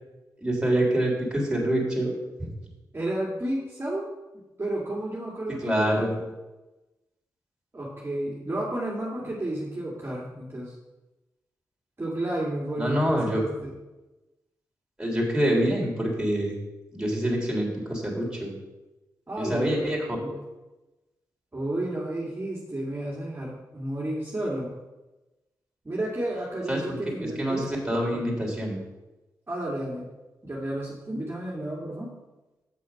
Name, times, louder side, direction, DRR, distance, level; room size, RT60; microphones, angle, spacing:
voice 1, 0.4-2.1 2.4-2.5 5.6-6.1 12.8-13.4 15.0-16.6 16.9-18.5 19.4-20.1 26.7-28.8, right 1 dB, 10° right, -2 dB, 3.6 m, -26 dB
voice 2, 2.9-4.1 4.6-6.2 7.7-10.7 12.0-13.7 19.3-20.4 21.5-24.7 25.8-27.7 28.1-28.2 29.5-30.1 30.4-32.1, right 1 dB, 30° right, -5 dB, 2.4 m, -32 dB
7.4 x 6.4 x 5.8 m, 1.1 s
supercardioid pair, 45°, 8 cm